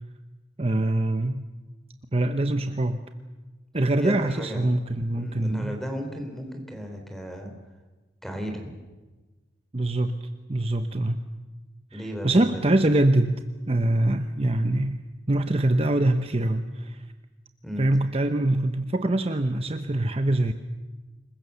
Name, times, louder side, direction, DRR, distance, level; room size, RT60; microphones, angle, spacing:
voice 1, 0.6-1.5 2.1-3.0 3.7-5.8 9.7-10.2 10.5-11.2 11.9-17.1 17.8-20.5, right 1 dB, 35° right, 8 dB, 0.9 m, -24 dB
voice 2, 4.0-4.8 5.1-7.5 8.2-8.7 11.9-12.6 17.6-17.9, equal, ahead, 4 dB, 4.0 m, -34 dB
27.0 x 22.0 x 7.0 m, 1.2 s
head